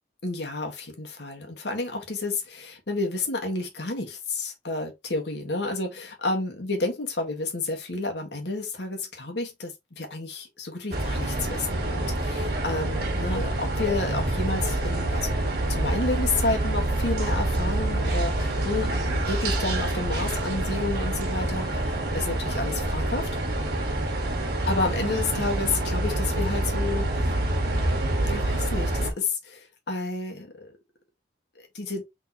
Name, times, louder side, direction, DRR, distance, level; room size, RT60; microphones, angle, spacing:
voice 1, 0.2-15.4 15.7-21.9 22.1-23.3 24.7-27.1 28.2-30.7 31.5-32.0, left 3 dB, 70° left, 1.5 m, -30 dB
sound 1, 10.9-29.1, right 1 dB, 55° right, 1.4 m, -27 dB
4.0 x 3.8 x 2.8 m
head